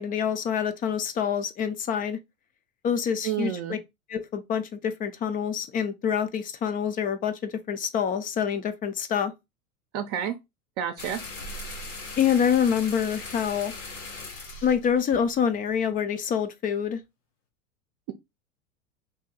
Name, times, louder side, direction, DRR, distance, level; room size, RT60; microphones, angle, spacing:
voice 1, 0.0-2.2 2.8-3.8 4.1-9.3 12.2-13.7 14.6-17.0, left 8 dB, 20° left, 0.4 m, -26 dB
voice 2, 3.2-3.8 9.9-10.3 10.8-11.2, right 9 dB, 55° right, 0.6 m, -29 dB
sound 1, 11.0-15.9, left 2 dB, 90° left, 1.4 m, -39 dB
2.8 x 2.7 x 3.8 m
hypercardioid pair, 110°, 40 cm